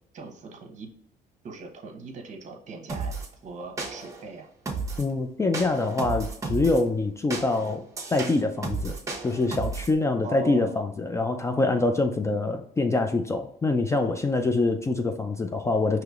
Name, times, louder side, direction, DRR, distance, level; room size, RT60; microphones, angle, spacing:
voice 1, 0.1-0.9 1.4-3.2 3.4-4.5 10.2-10.9, right 4 dB, 45° right, 2 dB, 0.9 m, -40 dB
sound 1, 2.9-3.3 3.8-4.2 4.7-5.1 5.5-6.8 7.3-9.9, right 3 dB, 20° right, 1.0 m, -33 dB
voice 2, 5.0-7.8 8.1-8.9 9.2-16.0, left 3 dB, 15° left, 6 dB, 0.3 m, -25 dB
4.8 x 2.9 x 2.4 m, 0.67 s
cardioid pair, 110°, 17 cm